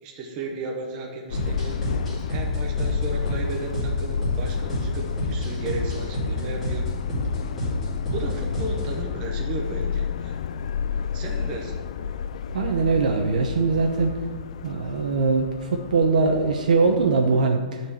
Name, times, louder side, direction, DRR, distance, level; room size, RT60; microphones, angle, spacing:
voice 1, 0.0-1.8 2.3-6.8 8.1-10.4 11.1-11.8, right 3 dB, 25° right, 0 dB, 1.0 m, -34 dB
Subway metro underground, 1.3-17.4, left 7 dB, 60° left, 0.4 m, -31 dB
sound 1, 1.3-9.0, left 1 dB, 5° left, 2.7 m, -29 dB
voice 2, 12.5-14.1 14.6-17.8, right 4 dB, 85° right, 2 dB, 1.0 m, -21 dB
10.5 x 4.5 x 7.1 m, 1.4 s
hypercardioid pair, 175°, 4 cm